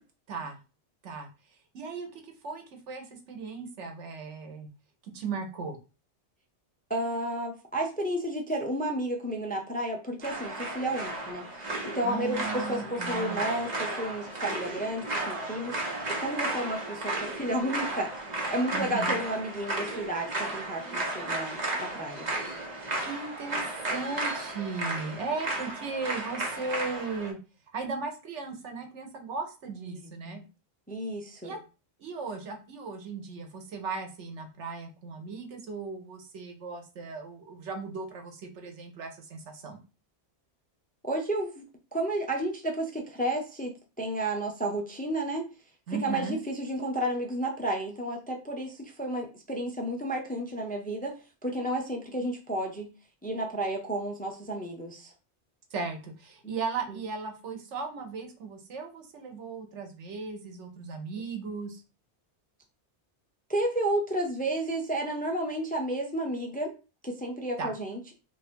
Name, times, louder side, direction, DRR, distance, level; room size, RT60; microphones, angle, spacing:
voice 1, 0.3-0.6 1.0-1.3 1.7-4.7 5.1-5.8 12.0-13.4 18.7-19.2 23.0-27.4 27.7-30.4 31.4-31.6 32.0-39.8 45.9-46.4 55.7-61.8 67.6-67.7, right 4 dB, 90° right, 5 dB, 1.2 m, -37 dB
voice 2, 6.9-11.4 11.8-18.1 18.5-22.3 29.9-30.4 30.9-31.5 41.0-41.6 41.9-43.7 44.0-45.4 46.0-51.1 51.4-52.9 53.2-55.1 56.9-57.0 63.5-66.7 67.0-68.1, right 1 dB, 10° left, 1 dB, 0.4 m, -32 dB
sound 1, 10.2-27.3, right 2 dB, 40° right, 1.1 m, -34 dB
3.1 x 2.5 x 4.2 m, 0.31 s
omnidirectional pair, 1.2 m